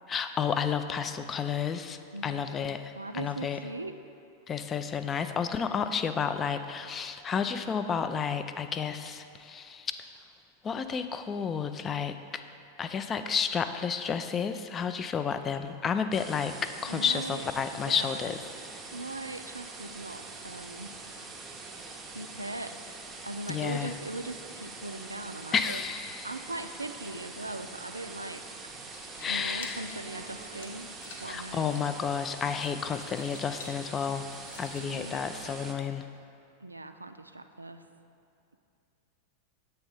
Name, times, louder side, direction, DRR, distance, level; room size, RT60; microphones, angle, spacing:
voice 1, 0.1-2.0 2.2-3.6 4.5-9.9 10.6-12.4 12.8-18.4 23.5-23.9 25.5-26.3 29.2-29.8 31.3-34.2 34.6-36.0, left 6 dB, 25° left, 9 dB, 0.3 m, -31 dB
voice 2, 2.1-4.0 16.9-18.3 18.9-21.0 22.1-22.7 23.2-25.8 26.1-28.4 29.3-30.9 31.2-31.8 34.7-35.2 36.6-37.9, right 2 dB, 80° right, 8 dB, 0.3 m, -40 dB
sound 1, 16.1-35.7, right 3 dB, 15° right, 0.6 m, -44 dB
sound 2, 28.8-35.8, left 2 dB, 60° left, 0.8 m, -50 dB
7.9 x 3.3 x 5.3 m, 2.6 s
figure-of-eight pair, 90°, 0 cm